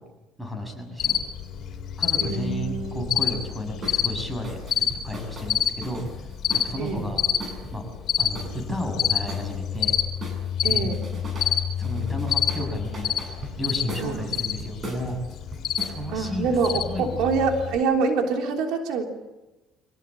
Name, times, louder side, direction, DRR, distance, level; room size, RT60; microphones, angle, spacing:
voice 1, 0.4-1.2 2.0-6.0 6.5-7.2 7.7-7.8 8.2-10.0 10.7-10.9 11.8-13.2 13.6-15.2 15.8-17.1, left 1 dB, 5° right, 4 dB, 6.9 m, -33 dB
Cricket, 1.0-17.8, left 9 dB, 55° left, 3.9 m, -28 dB
voice 2, 2.2-3.1 6.8-7.1 10.6-11.0 14.0-14.3 16.1-19.1, right 4 dB, 75° right, 3 dB, 3.2 m, -26 dB
sound 1, 3.8-4.0 4.4-7.8 8.4-9.9 10.2-11.5 11.8-16.0, right 1 dB, 30° right, 7.7 m, -39 dB
26.0 x 18.0 x 8.8 m, 1.1 s
cardioid pair, 115°, 0 cm